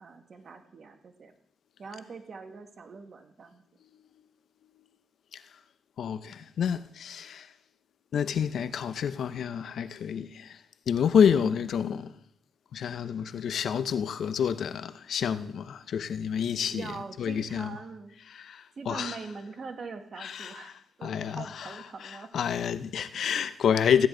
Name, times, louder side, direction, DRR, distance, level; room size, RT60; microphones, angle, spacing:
voice 1, 0.0-1.3 1.8-3.6 11.4-11.7 16.7-18.2 18.8-22.3, right 4 dB, 55° right, 1.7 m, -43 dB
voice 2, 6.0-7.5 8.1-12.2 12.7-17.8 18.3-19.2 20.2-20.7 21.0-24.1, left 7 dB, 75° left, 0.7 m, -29 dB
15.5 x 10.5 x 3.8 m
cardioid pair, 65°, 0 cm